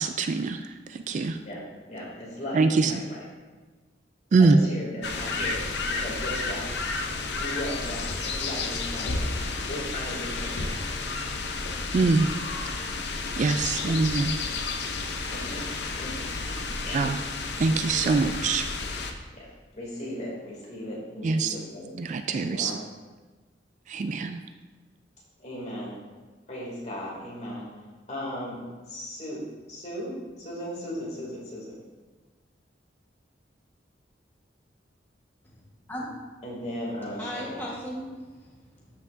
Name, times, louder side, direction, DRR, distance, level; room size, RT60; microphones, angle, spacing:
voice 1, 0.0-1.4 2.5-2.9 4.3-4.6 11.9-12.3 13.4-14.4 16.9-17.2 17.6-18.7 21.2-21.6 21.9-22.8 23.9-24.4, right 4 dB, 40° right, 8 dB, 0.3 m, -24 dB
voice 2, 1.9-3.2 4.4-6.7 7.4-9.4 9.7-10.8 13.8-13.9 15.3-15.6 16.0-17.0 18.0-18.1 19.3-19.5 19.7-21.9 22.4-22.8 25.4-26.0 26.5-27.6 28.1-28.6 28.9-29.4 29.7-31.7 36.4-37.5, equal, 40° left, -5 dB, 2.6 m, -36 dB
sound 1, 5.0-19.1, left 3 dB, 65° left, 0.7 m, -31 dB
voice 3, 37.2-38.9, equal, 10° left, -5 dB, 1.3 m, -37 dB
13.0 x 5.8 x 2.6 m, 1.3 s
head